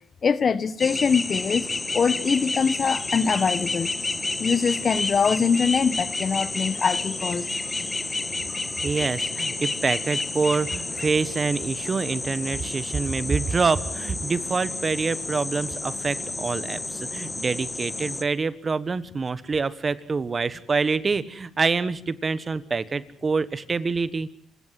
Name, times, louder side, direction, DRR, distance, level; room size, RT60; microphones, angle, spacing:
voice 1, 0.2-1.7 1.9-3.9 4.4-7.5, left 6 dB, 45° left, 1.1 m, -23 dB
sound 1, 0.8-18.2, left 3 dB, 20° left, 1.6 m, -30 dB
voice 2, 8.8-24.3, right 4 dB, 35° right, 1.3 m, -26 dB
27.5 x 17.0 x 7.7 m
cardioid pair, 90°, 0 cm